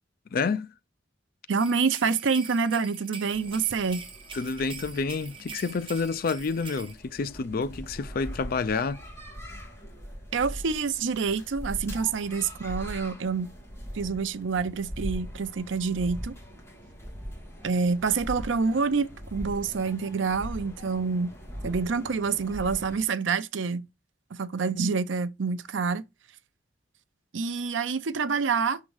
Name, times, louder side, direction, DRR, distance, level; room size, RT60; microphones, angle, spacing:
voice 1, 0.3-0.7 4.3-9.0, left 4 dB, 50° left, 0.4 m, -29 dB
voice 2, 1.5-4.0 10.3-13.5 13.9-16.3 17.6-21.3 21.6-23.9 24.3-26.0 27.3-28.8, right 5 dB, 80° right, 0.6 m, -27 dB
sound 1, 1.6-6.9, right 5 dB, 30° right, 1.0 m, -44 dB
sound 2, 3.3-23.0, equal, 15° left, 1.7 m, -41 dB
6.3 x 3.7 x 4.7 m
head